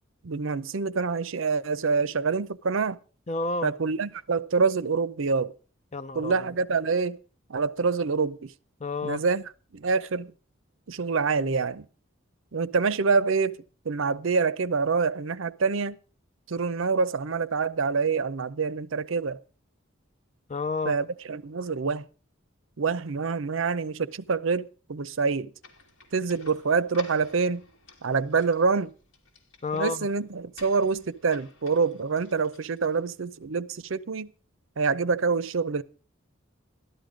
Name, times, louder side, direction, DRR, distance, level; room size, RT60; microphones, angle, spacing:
voice 1, 0.2-3.0 3.6-5.5 6.1-7.2 7.5-8.5 9.0-9.4 9.7-10.3 10.9-11.9 12.5-13.6 13.9-16.0 16.5-19.4 20.9-22.1 22.8-25.5 26.1-27.6 28.0-28.9 29.7-34.3 34.8-35.8, right 4 dB, 70° right, 0.6 m, -26 dB
voice 2, 3.3-3.7 5.9-6.3 8.8-9.2 20.5-21.0 29.6-30.1, left 3 dB, 30° left, 0.6 m, -30 dB
sound 1, 25.6-33.3, left 3 dB, 60° left, 2.9 m, -52 dB
13.5 x 12.5 x 5.1 m
head